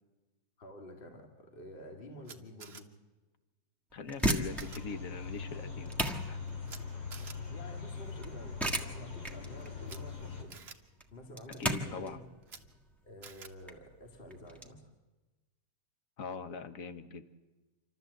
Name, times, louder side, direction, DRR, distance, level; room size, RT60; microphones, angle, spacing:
voice 1, 0.6-2.9 7.3-10.6 11.1-12.2 13.0-14.9, left 1 dB, 30° left, 3 dB, 2.1 m, -49 dB
Camera, 2.2-2.8 4.2-4.3 4.6-4.8 6.7-6.8 7.1-7.4 9.8-10.0 10.5-10.7 12.4-12.6 13.2-13.5, right 6 dB, 40° right, 1.1 m, -48 dB
voice 2, 3.9-6.4 11.6-12.2 16.2-17.3, left 4 dB, 50° left, 10 dB, 1.4 m, -42 dB
sound 1, 3.9-14.7, right 1 dB, ahead, 1.4 m, -37 dB
sound 2, 4.4-10.4, left 5 dB, 80° left, 3.7 m, -42 dB
27.5 x 13.0 x 8.0 m, 1.2 s
omnidirectional pair, 2.0 m